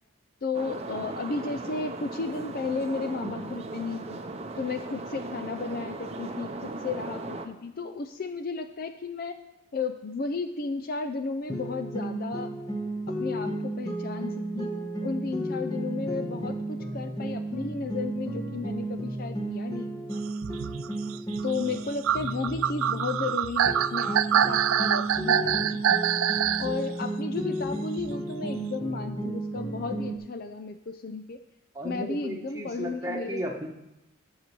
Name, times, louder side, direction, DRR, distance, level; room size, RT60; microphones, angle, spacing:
voice 1, 0.4-4.2 4.6-9.4 9.7-12.5 13.1-20.2 21.4-25.8 26.6-31.4 31.8-33.5, left 4 dB, 45° left, 8 dB, 0.5 m, -34 dB
sound 1, 0.5-7.5, right 2 dB, 30° right, 0.7 m, -37 dB
sound 2, 11.5-23.3 23.6-30.2, right 1 dB, 20° left, 1.4 m, -33 dB
sound 3, 20.3-26.7 28.0-28.1, right 9 dB, 85° right, 0.4 m, -25 dB
voice 2, 31.7-33.7, equal, 15° right, -1 dB, 1.4 m, -34 dB
10.5 x 6.6 x 6.1 m, 0.92 s
head